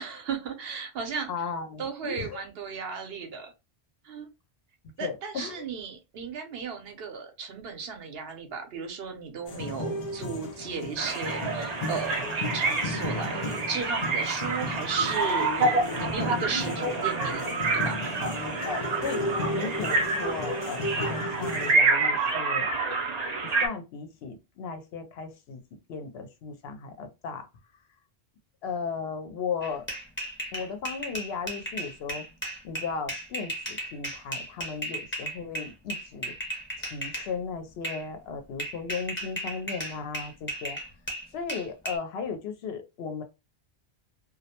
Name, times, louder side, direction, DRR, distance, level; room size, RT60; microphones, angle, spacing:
voice 1, 0.0-3.5 4.0-4.3 5.0-12.2 12.5-17.4 17.7-18.0, right 6 dB, 70° right, 0.9 m, -35 dB
voice 2, 1.3-2.4 5.0-5.6 18.6-22.7 23.4-25.6 25.9-27.5 28.6-29.8 30.5-32.2 32.6-36.3 36.8-40.8 41.3-43.2, left 5 dB, 75° left, 0.8 m, -36 dB
sound 1, 9.5-21.7, left 2 dB, 50° left, 0.5 m, -34 dB
sound 2, 11.0-23.7, right 3 dB, 50° right, 0.5 m, -28 dB
sound 3, 29.6-37.3 37.8-38.0 38.6-42.0, right 1 dB, 15° left, 0.7 m, -35 dB
2.3 x 2.0 x 2.8 m
omnidirectional pair, 1.1 m